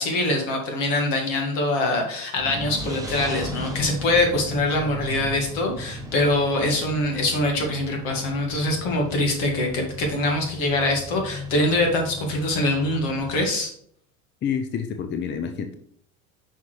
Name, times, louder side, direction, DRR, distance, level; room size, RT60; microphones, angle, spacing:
voice 1, 0.0-13.7, left 1 dB, 65° left, 2 dB, 2.2 m, -24 dB
sound 1, 2.3-13.5, left 1 dB, 10° right, 1.2 m, -36 dB
voice 2, 14.4-15.7, left 7 dB, 25° left, 6 dB, 0.7 m, -28 dB
5.7 x 5.6 x 3.3 m, 0.63 s
hypercardioid pair, 85°, 41 cm